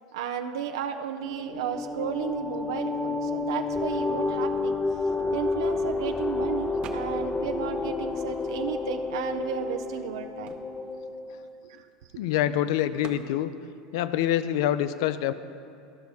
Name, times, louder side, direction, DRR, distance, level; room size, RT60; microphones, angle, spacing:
voice 1, 0.1-4.8 5.3-10.5 11.6-11.8, right 8 dB, 85° right, 5 dB, 0.5 m, -33 dB
sound 1, 1.3-11.5, left 3 dB, 15° left, 0.5 m, -30 dB
sound 2, 6.8-7.4 7.7-9.0 9.6-9.7 9.9-12.2 13.0-13.3, right 6 dB, 45° right, 0.7 m, -47 dB
voice 2, 12.2-13.5 13.9-15.3, left 12 dB, 70° left, 13 dB, 0.4 m, -26 dB
13.0 x 5.3 x 4.7 m, 2.4 s
supercardioid pair, 110°, 2 cm